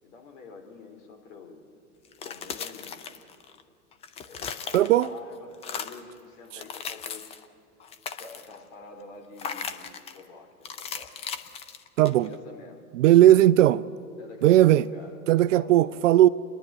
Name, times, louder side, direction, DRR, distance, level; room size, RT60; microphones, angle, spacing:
voice 1, 0.0-1.6 2.2-3.0 4.2-7.4 8.1-11.2 12.1-12.9 14.2-15.2 15.6-16.1, left 4 dB, 55° left, 4.0 m, -47 dB
sound 1, 2.1-3.6 3.9-5.2 5.5-6.1 6.5-7.5 7.8-8.6 9.4-10.2 10.7-12.4, left 7 dB, 15° left, 0.5 m, -37 dB
voice 2, 4.7-5.1 12.0-12.3 12.9-13.8 14.4-14.9 15.3-16.3, right 13 dB, 55° right, 0.5 m, -17 dB
28.5 x 11.0 x 9.1 m
hypercardioid pair, 115°, 46 cm